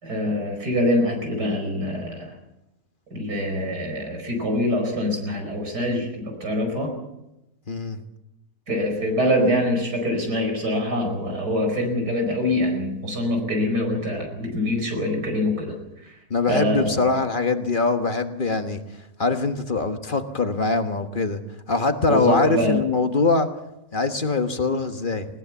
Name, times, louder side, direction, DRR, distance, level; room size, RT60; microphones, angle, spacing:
voice 1, 0.0-2.3 3.1-6.9 8.7-15.8 16.0-16.2 16.5-17.0 22.1-22.8, left 1 dB, 85° right, 3 dB, 5.4 m, -24 dB
voice 2, 7.7-8.0 16.3-18.8 19.2-21.4 21.7-23.5 23.9-25.3, left 3 dB, 35° left, 7 dB, 1.3 m, -23 dB
19.5 x 18.5 x 7.2 m, 0.91 s
omnidirectional pair, 1.7 m